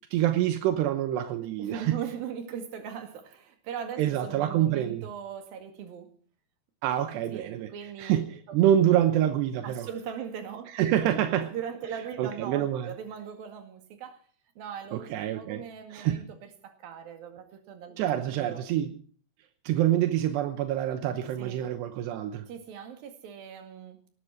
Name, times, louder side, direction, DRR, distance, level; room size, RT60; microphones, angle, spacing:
voice 1, 0.1-2.0 4.0-5.1 6.8-7.7 8.0-9.9 10.7-11.5 12.2-12.9 14.9-15.6 15.9-16.2 18.0-18.9 19.6-22.5, right 11 dB, 80° right, 3.0 m, -26 dB
voice 2, 1.6-6.1 7.3-8.2 9.6-10.7 11.1-14.3 14.6-18.7 21.4-21.6 22.5-24.0, right 8 dB, 60° right, 3.6 m, -40 dB
18.5 x 13.5 x 4.8 m
omnidirectional pair, 5.0 m